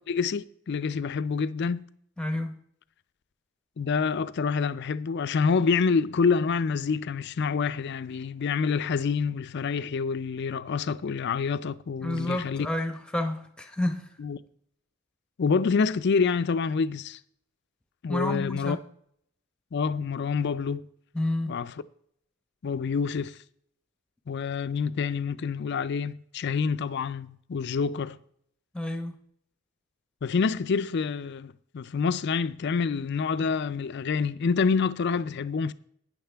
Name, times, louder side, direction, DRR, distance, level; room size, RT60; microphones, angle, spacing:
voice 1, 0.1-1.9 3.8-12.7 14.2-14.4 15.4-17.2 18.0-18.8 19.7-20.9 21.5-21.7 22.6-23.4 24.3-28.2 30.2-35.7, left 5 dB, 55° left, 0.4 m, -27 dB
voice 2, 2.2-2.6 12.0-14.0 18.1-18.8 21.1-21.6 28.7-29.1, left 1 dB, 5° left, 0.8 m, -30 dB
12.5 x 9.5 x 3.4 m
head